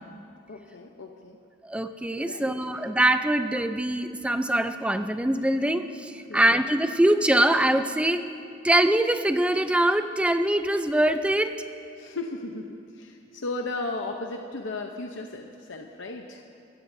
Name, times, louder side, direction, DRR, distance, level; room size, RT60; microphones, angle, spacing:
voice 1, 0.5-1.4 2.2-2.9 6.3-6.6 12.0-16.4, left 2 dB, 75° left, 3 dB, 0.8 m, -36 dB
voice 2, 1.6-8.2 8.6-11.5, right 1 dB, 5° right, 9 dB, 0.4 m, -23 dB
24.0 x 15.0 x 2.7 m, 2.4 s
head